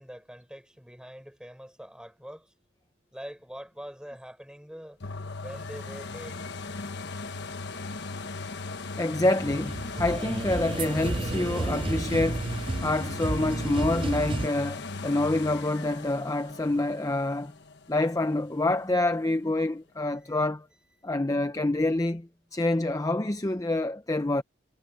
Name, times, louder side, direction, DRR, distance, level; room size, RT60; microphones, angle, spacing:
voice 1, 0.0-2.6 3.1-5.0 5.4-6.4 19.6-19.8 20.1-20.4, equal, 5° right, 6.1 m, -44 dB
sound 1, 5.0-18.7 19.2-19.3, left 3 dB, 55° left, 1.2 m, -38 dB
voice 2, 9.0-12.5 12.8-17.5 17.9-20.7 21.0-24.4, left 2 dB, 15° left, 0.6 m, -27 dB
sound 2, 9.3-14.5, right 2 dB, 25° right, 0.5 m, -32 dB
head